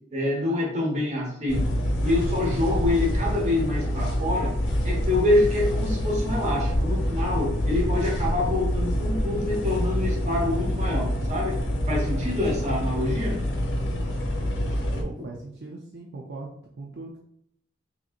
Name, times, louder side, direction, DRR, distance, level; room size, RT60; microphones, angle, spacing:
voice 1, 0.1-1.7 2.0-4.6 4.8-11.6 11.9-13.4, left 2 dB, 35° right, -2 dB, 1.1 m, -26 dB
sound 1, 1.5-15.0, equal, 70° left, 0.9 m, -26 dB
voice 2, 15.0-16.5 16.8-17.2, right 3 dB, 60° right, -1 dB, 0.5 m, -39 dB
5.4 x 2.8 x 2.5 m, 0.72 s
head